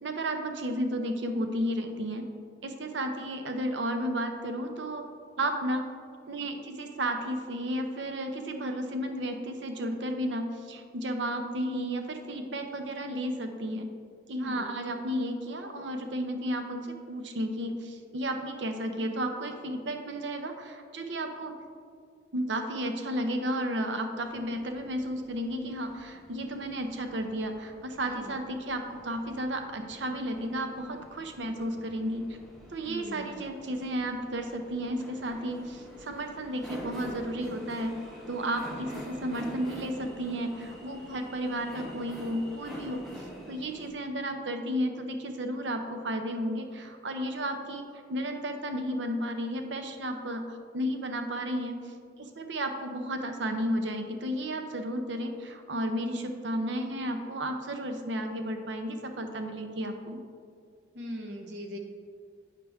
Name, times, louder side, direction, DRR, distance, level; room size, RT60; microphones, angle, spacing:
voice 1, 0.0-2.3 2.6-5.0 5.4-5.8 6.3-13.9 14.3-21.5 22.3-32.3 32.7-38.0 38.3-43.0 43.5-47.8 48.1-51.8 52.2-60.2, equal, 75° right, 6 dB, 0.7 m, -33 dB
voice 2, 14.4-14.8 28.0-28.3 32.9-33.3 60.9-61.8, equal, 60° right, 1 dB, 1.0 m, -40 dB
sound 1, 24.2-43.9, equal, ahead, 0.9 m, -46 dB
9.1 x 5.0 x 3.5 m, 2.1 s
head